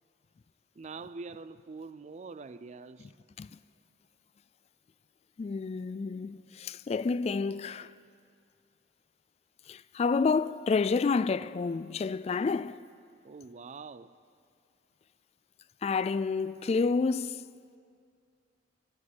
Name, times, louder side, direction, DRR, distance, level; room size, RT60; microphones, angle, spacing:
voice 1, 0.7-3.1 13.2-14.2, right 4 dB, 40° right, 0.4 m, -44 dB
voice 2, 5.4-7.9 9.7-12.8 15.8-17.4, left 4 dB, 35° left, 0.3 m, -29 dB
20.0 x 7.5 x 9.7 m
head